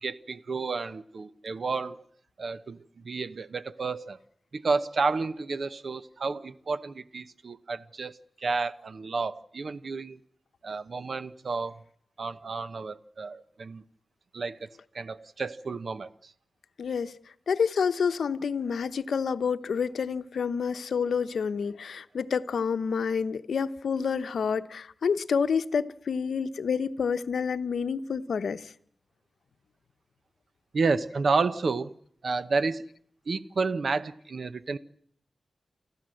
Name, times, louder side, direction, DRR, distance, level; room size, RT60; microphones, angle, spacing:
voice 1, 0.0-2.0 2.4-4.2 4.5-10.2 10.6-11.8 12.2-13.8 14.3-14.7 14.9-16.3 30.7-31.9 32.2-32.9 33.3-34.8, right 4 dB, 60° right, 0.9 m, -31 dB
voice 2, 16.8-17.2 17.5-28.7, left 6 dB, 80° left, 0.9 m, -28 dB
29.5 x 11.5 x 7.8 m
wide cardioid pair, 90°, 0 cm